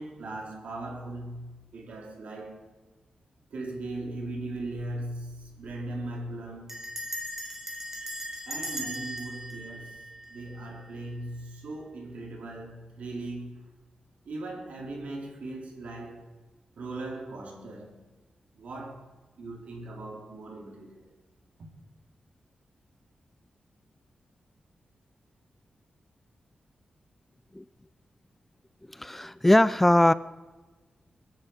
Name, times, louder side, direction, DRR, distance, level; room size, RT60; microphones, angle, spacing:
voice 1, 0.0-2.7 3.5-6.8 8.5-13.6 14.3-16.3 16.8-18.0 18.5-19.1 19.4-21.1, right 2 dB, 75° right, 4.2 m, -39 dB
Bell, 4.6-4.9 5.2-5.3 5.5-5.9 6.7-10.8, equal, 15° right, 3.3 m, -38 dB
voice 2, 28.9-30.1, left 1 dB, 10° left, 0.4 m, -20 dB
22.0 x 10.5 x 5.1 m
wide cardioid pair, 155°, 2 cm